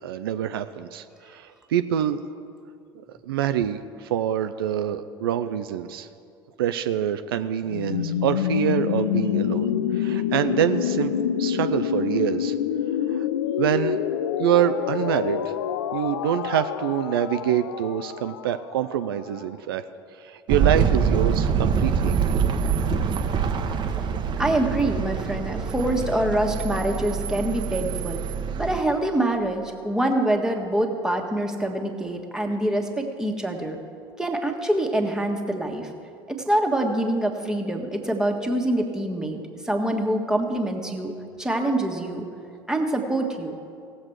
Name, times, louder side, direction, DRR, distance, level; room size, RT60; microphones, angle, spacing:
voice 1, 0.0-2.2 3.0-6.1 6.6-11.1 11.4-12.5 13.1-13.3 13.6-14.0 14.4-15.5 15.9-19.8 20.2-22.1, right 10 dB, 70° right, 10 dB, 0.4 m, -26 dB
sound 1, 7.6-19.4, left 9 dB, 75° left, 0.4 m, -27 dB
sound 2, 20.5-28.8, right 6 dB, 35° right, 0.9 m, -25 dB
voice 2, 24.4-28.2 28.6-33.8 34.2-35.9 36.3-39.4 39.6-41.1 41.4-42.2 42.7-43.5, right 1 dB, 5° right, 1 dB, 1.5 m, -25 dB
18.0 x 7.3 x 4.7 m, 2.5 s
figure-of-eight pair, 65°, 13 cm